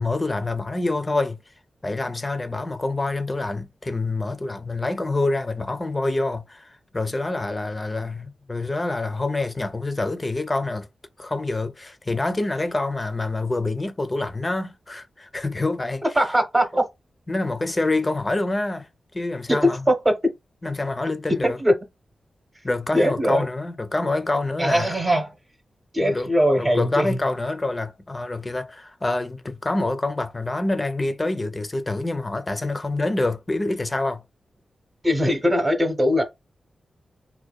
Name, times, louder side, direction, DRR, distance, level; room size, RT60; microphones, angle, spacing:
voice 1, 0.0-1.4 1.8-10.9 11.2-16.0 17.3-18.9 19.1-19.8 20.6-21.6 22.6-25.0 26.0-26.3 26.6-34.2, left 2 dB, 30° left, 0.5 m, -26 dB
voice 2, 16.1-16.8 19.5-20.1 21.4-21.7 22.9-23.4 24.6-25.3 25.9-27.2 35.0-36.2, equal, 25° right, 0.8 m, -20 dB
2.6 x 2.2 x 2.2 m
cardioid pair, 60°, 0 cm